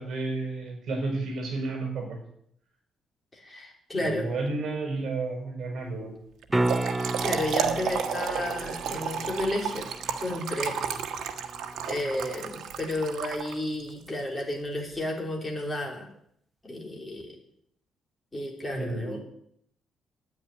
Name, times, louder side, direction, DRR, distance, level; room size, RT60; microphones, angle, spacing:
voice 1, 0.0-2.2 4.0-6.1 8.9-9.0 18.7-19.2, right 3 dB, 50° right, 2 dB, 5.8 m, -32 dB
voice 2, 3.3-4.2 7.2-9.9 10.2-10.7 11.9-16.1 16.6-17.4 18.3-19.2, left 1 dB, 15° left, -1 dB, 3.5 m, -32 dB
Trickle dribble / Fill (with liquid), 6.4-13.9, right 7 dB, 75° right, 1.4 m, -32 dB
sound 1, 6.5-12.5 17.2-17.3, right 2 dB, 10° right, 0.7 m, -34 dB
9.4 x 9.3 x 9.9 m, 0.70 s
cardioid pair, 155°, 0 cm